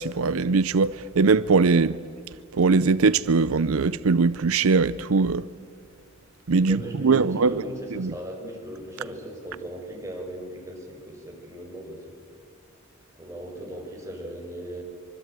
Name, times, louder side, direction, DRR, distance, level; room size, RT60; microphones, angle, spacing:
voice 1, 0.0-2.0 2.5-5.5 6.5-7.6 7.9-8.1, right 4 dB, 85° right, 0.6 m, -21 dB
voice 2, 6.6-12.0 13.1-14.8, equal, 15° right, 5.5 m, -38 dB
25.0 x 24.0 x 9.0 m
head